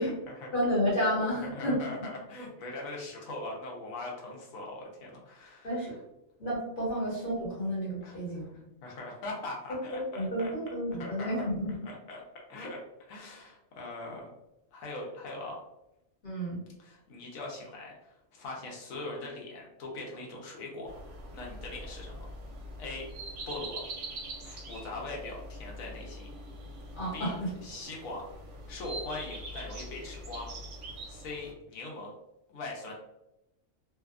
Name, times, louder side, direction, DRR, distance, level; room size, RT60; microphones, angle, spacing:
voice 1, 0.0-0.3 1.4-5.9 8.0-8.2 8.8-10.5 11.0-11.5 11.8-12.2 12.5-12.8 13.1-14.3 14.7-15.6 16.8-20.9 21.3-22.3 22.8-23.1 23.5-23.8 24.4-26.3 27.1-27.3 27.6-28.3 28.7-30.5 31.1-32.1 32.5-32.9, left 2 dB, 80° left, -2 dB, 1.1 m, -41 dB
voice 2, 0.5-1.8 5.6-6.0 6.4-8.5 9.9-11.9 16.2-16.6 26.9-27.5, equal, 40° left, -6 dB, 1.2 m, -31 dB
sound 1, 20.9-31.5, right 1 dB, 70° right, 0.9 m, -43 dB
2.6 x 2.2 x 2.3 m, 0.90 s
omnidirectional pair, 1.4 m